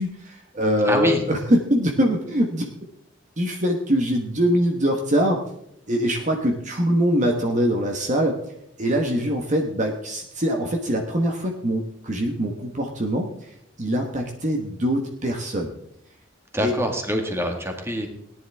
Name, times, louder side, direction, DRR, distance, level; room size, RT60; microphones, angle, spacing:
voice 1, 0.0-2.6 3.4-5.4 5.9-8.4 8.8-13.3 13.8-15.7 16.6-16.7, equal, 40° right, 2 dB, 1.3 m, -23 dB
voice 2, 0.8-1.2 16.5-18.1, equal, 15° right, 3 dB, 1.9 m, -24 dB
18.5 x 10.5 x 3.6 m, 0.74 s
head